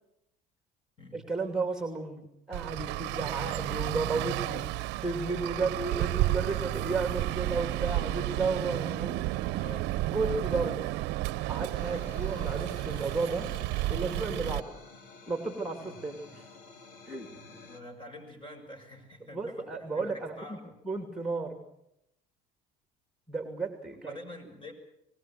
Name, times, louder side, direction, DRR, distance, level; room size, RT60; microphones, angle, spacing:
voice 1, 1.1-4.7 5.0-9.2 10.1-10.8 11.5-13.5 13.9-14.7 15.3-16.5 17.1-17.3 19.3-20.6 20.8-21.6 23.3-24.2, right 3 dB, 5° right, 5 dB, 2.7 m, -33 dB
Traffic noise roadway noise, 2.5-14.6, right 17 dB, 65° right, 0.9 m, -32 dB
voice 2, 6.2-6.7 7.0-7.1 9.6-9.9 11.6-12.1 14.4-14.6 15.8-16.0 17.2-20.7 23.9-24.7, left 1 dB, 25° left, 7 dB, 7.1 m, -48 dB
sound 1, 11.7-17.8, left 4 dB, 85° left, 3.9 m, -51 dB
25.0 x 20.0 x 7.7 m, 0.80 s
supercardioid pair, 100°, 19 cm